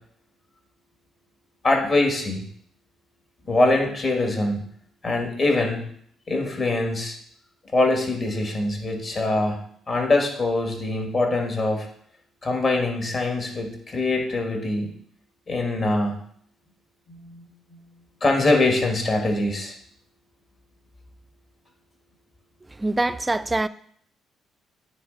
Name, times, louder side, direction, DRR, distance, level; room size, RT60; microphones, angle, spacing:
voice 1, 1.6-2.4 3.5-4.6 5.0-5.8 6.3-7.1 7.7-9.6 9.9-11.9 12.4-14.9 15.5-16.2 17.1-17.8 18.2-19.7, left 2 dB, 45° left, 1.7 m, -23 dB
voice 2, 22.7-23.7, right 2 dB, 20° right, 0.3 m, -24 dB
9.4 x 3.3 x 4.0 m
supercardioid pair, 75°, 0 cm